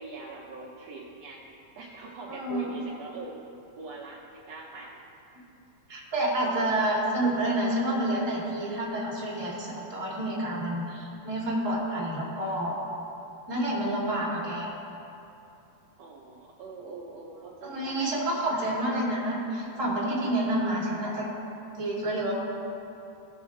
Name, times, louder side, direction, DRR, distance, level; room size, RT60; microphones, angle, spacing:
voice 1, 0.0-1.4 1.8-3.4 3.8-5.0 16.0-18.1 18.3-18.8, right 3 dB, 70° right, -5 dB, 1.9 m, -42 dB
voice 2, 2.3-2.7 5.9-12.7 13.5-14.7 17.6-21.3 21.8-22.6, right 1 dB, 10° right, -7 dB, 1.9 m, -29 dB
17.0 x 5.9 x 3.6 m, 2.8 s
omnidirectional pair, 3.4 m